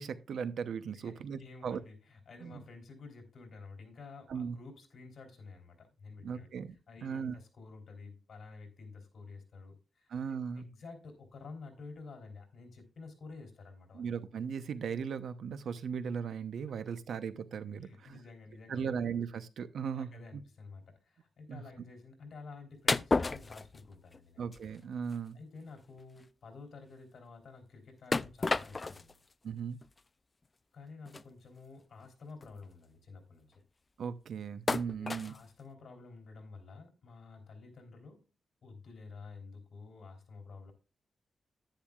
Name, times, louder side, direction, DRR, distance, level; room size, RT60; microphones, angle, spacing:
voice 1, 0.0-1.8 2.4-2.6 4.3-4.6 6.2-6.8 7.0-7.3 10.1-10.7 13.9-18.2 18.7-20.1 21.5-21.6 24.4-25.4 29.4-29.8 34.0-35.3, right 6 dB, 80° right, 0.8 m, -37 dB
voice 2, 0.9-6.5 6.9-14.1 17.8-19.0 19.9-24.4 25.3-29.1 30.7-33.5 34.8-38.2 38.6-40.7, left 4 dB, 60° left, 3.5 m, -51 dB
sound 1, 22.9-24.2 24.5-24.7 25.1-25.2 25.7-25.8 26.0-26.2 28.1-29.1 29.8-29.9 31.0-31.2 32.0-32.1 32.4-32.6 34.7-35.4, left 3 dB, 30° left, 0.4 m, -32 dB
10.5 x 10.5 x 2.4 m
wide cardioid pair, 110°, 0 cm